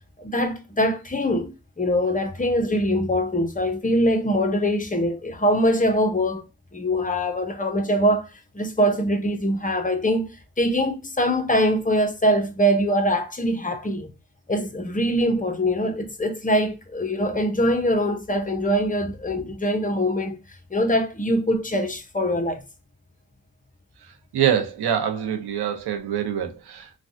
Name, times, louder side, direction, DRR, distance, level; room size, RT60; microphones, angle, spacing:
voice 1, 0.2-1.5 1.8-6.5 6.7-8.3 8.5-10.3 10.6-14.1 14.5-20.4 20.7-22.6, equal, 20° left, 0.8 m, -23 dB
voice 2, 24.3-27.0, right 9 dB, 85° right, 0.7 m, -25 dB
3.3 x 2.3 x 2.5 m
cardioid pair, 60°, 38 cm